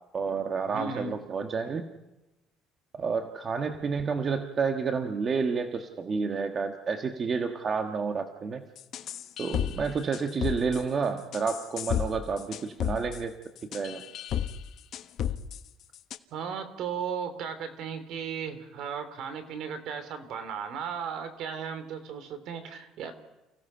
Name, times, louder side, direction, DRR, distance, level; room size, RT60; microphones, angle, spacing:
voice 1, 0.1-1.8 3.0-8.6 9.4-13.3 13.7-14.0, right 5 dB, 30° right, 6 dB, 1.4 m, -30 dB
voice 2, 0.7-1.2 16.3-23.1, right 6 dB, 65° right, 10 dB, 3.2 m, -36 dB
sound 1, 8.8-9.8 10.1-10.8 11.3-12.1 12.4-13.2 13.6-14.6 14.9-15.6 15.9-16.2, left 10 dB, 50° left, 1.2 m, -32 dB
29.5 x 16.5 x 5.7 m, 1.0 s
cardioid pair, 140°, 0 cm